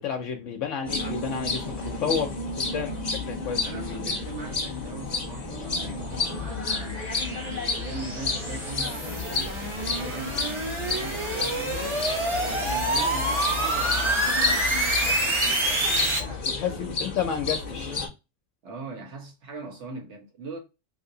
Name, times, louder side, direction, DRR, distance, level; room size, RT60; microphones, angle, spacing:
voice 1, 0.0-2.3 2.6-3.6 16.6-18.0, left 7 dB, 75° left, 0.9 m, -31 dB
sound 1, 0.8-18.1, left 4 dB, 40° left, 0.8 m, -31 dB
voice 2, 1.9-3.1 3.6-12.0 12.5-14.7 15.0-16.5 18.6-20.6, right 3 dB, 60° right, 1.4 m, -41 dB
sound 2, 5.1-16.2, right 1 dB, 25° right, 0.8 m, -28 dB
3.2 x 2.8 x 2.6 m
omnidirectional pair, 1.3 m